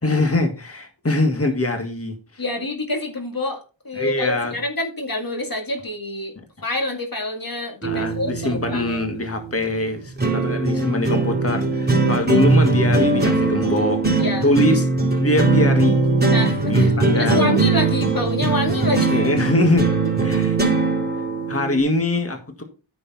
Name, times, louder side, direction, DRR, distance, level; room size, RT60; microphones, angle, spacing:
voice 1, 0.0-2.4 4.0-4.6 7.8-14.0 14.4-14.9 15.2-16.0 16.7-17.5 19.1-19.9 20.2-20.8 21.5-22.6, left 2 dB, 30° left, 1.9 m, -23 dB
voice 2, 2.4-6.4 6.6-9.0 10.3-10.5 14.2-14.5 16.3-19.2, left 2 dB, 45° left, 2.1 m, -27 dB
sound 1, 7.8-21.8, right 3 dB, 20° right, 3.4 m, -20 dB
9.8 x 6.9 x 4.2 m
wide cardioid pair, 50°, 46 cm